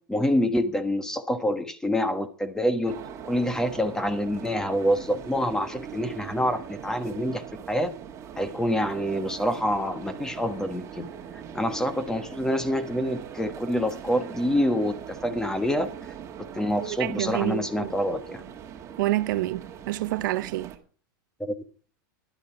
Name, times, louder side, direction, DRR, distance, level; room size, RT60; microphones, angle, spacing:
voice 1, 0.1-3.0 3.2-7.4 7.7-7.9 8.4-11.1 11.5-15.9 16.5-18.4 21.4-21.5, equal, 5° left, 1.3 m, -26 dB
sound 1, 2.9-20.8, right 8 dB, 25° right, 1.9 m, -41 dB
voice 2, 16.8-17.9 19.0-20.7, right 17 dB, 65° right, 0.6 m, -28 dB
13.0 x 11.5 x 4.6 m
supercardioid pair, 140°, 11 cm